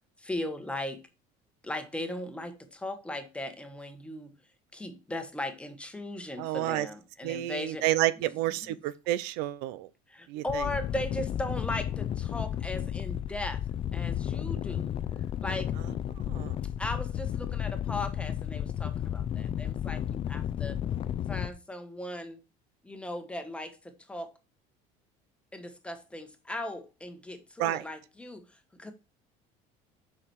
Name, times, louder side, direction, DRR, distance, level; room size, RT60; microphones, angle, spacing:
voice 1, 0.2-1.0 1.6-4.3 4.7-7.8 8.2-8.3 8.6-8.7 10.1-13.6 13.9-15.0 15.4-15.7 16.8-20.8 21.3-22.4 22.8-24.3 25.5-28.5 28.7-28.9, left 1 dB, 5° left, 1.3 m, -37 dB
voice 2, 6.4-6.9 7.2-9.9 10.3-10.7 16.2-16.6 27.6-27.8, right 14 dB, 80° right, 0.7 m, -30 dB
sound 1, 10.5-21.5, left 10 dB, 35° left, 0.5 m, -33 dB
7.6 x 5.9 x 4.6 m
cardioid pair, 140°, 16 cm